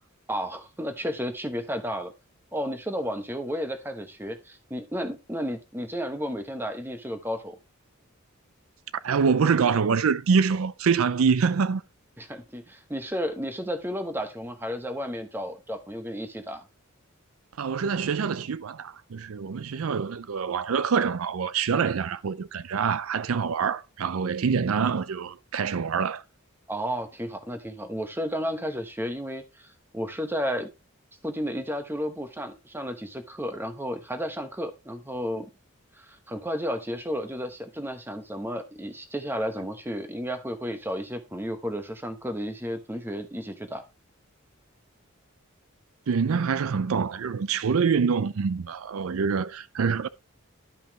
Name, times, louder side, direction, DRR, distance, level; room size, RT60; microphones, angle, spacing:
voice 1, 0.3-2.1 2.5-7.6 12.2-16.6 26.7-29.7 29.9-30.7 31.2-35.5 35.9-43.8, equal, 10° right, 1.0 m, -32 dB
voice 2, 9.0-11.8 17.6-26.2 46.1-50.1, right 6 dB, 80° right, 0.5 m, -25 dB
12.5 x 5.5 x 2.9 m
head